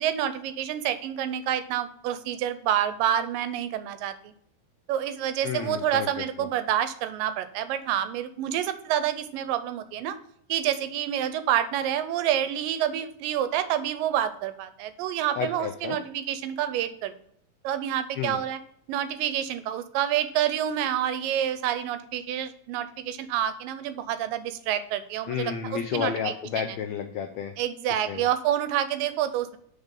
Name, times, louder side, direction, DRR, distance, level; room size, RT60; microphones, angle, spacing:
voice 1, 0.0-4.3 4.9-10.2 10.5-17.1 17.6-18.6 18.9-26.3 27.6-29.6, right 10 dB, 90° right, 11 dB, 2.4 m, -28 dB
voice 2, 5.4-6.1 6.4-6.5 15.3-16.0 18.2-18.4 25.3-27.5 28.0-28.3, left 8 dB, 85° left, 5 dB, 1.5 m, -31 dB
8.1 x 5.1 x 5.2 m, 0.66 s
omnidirectional pair, 3.9 m